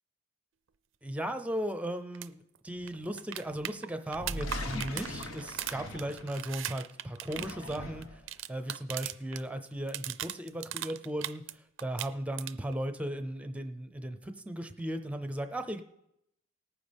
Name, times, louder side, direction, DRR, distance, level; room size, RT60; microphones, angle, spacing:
voice 1, 1.0-8.2 8.5-15.8, right 1 dB, 5° right, 8 dB, 0.6 m, -36 dB
sound 1, 2.1-2.3 2.6-2.7 2.9-9.4 9.7-11.5 11.8-12.7 14.8-14.9, right 12 dB, 65° right, 0.4 m, -39 dB
sound 2, 4.1-6.6 7.1-8.3, left 1 dB, 80° left, 1.1 m, -40 dB
18.5 x 9.5 x 3.5 m, 0.82 s
head